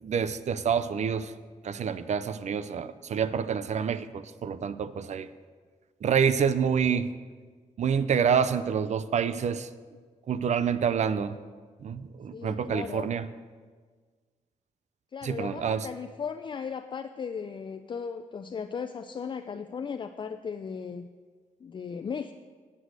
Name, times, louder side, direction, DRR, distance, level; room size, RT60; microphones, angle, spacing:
voice 1, 0.0-1.3 1.6-5.3 6.0-7.1 7.8-9.7 10.3-11.4 11.8-13.2 15.2-15.9, right 7 dB, 60° right, 14 dB, 0.5 m, -27 dB
voice 2, 12.3-13.1 15.1-21.1 21.6-22.3, left 6 dB, 35° left, 8 dB, 0.4 m, -36 dB
8.3 x 7.9 x 6.2 m, 1.5 s
cardioid pair, 85°, 13 cm